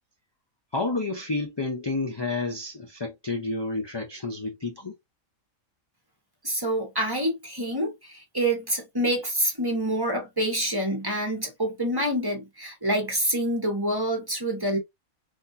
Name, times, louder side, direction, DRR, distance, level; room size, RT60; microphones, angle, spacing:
voice 1, 0.7-4.9, left 3 dB, 30° left, 0.5 m, -30 dB
voice 2, 6.4-14.8, right 1 dB, 20° right, 1.1 m, -27 dB
4.2 x 2.7 x 2.6 m
omnidirectional pair, 1.4 m